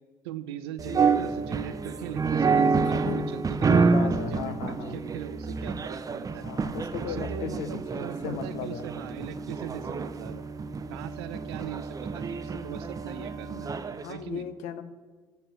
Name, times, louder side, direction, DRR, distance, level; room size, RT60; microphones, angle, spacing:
voice 1, 0.2-4.6 4.9-6.5 7.0-10.4 10.9-13.7 14.1-14.5, right 9 dB, 80° right, 14 dB, 0.5 m, -40 dB
sound 1, 0.8-14.1, right 4 dB, 25° right, 0.6 m, -28 dB
voice 2, 2.8-3.4 3.7-5.0 6.4-8.9 14.0-14.8, left 8 dB, 70° left, 11 dB, 0.8 m, -36 dB
7.6 x 6.8 x 7.5 m, 1.3 s
hypercardioid pair, 60°, 13 cm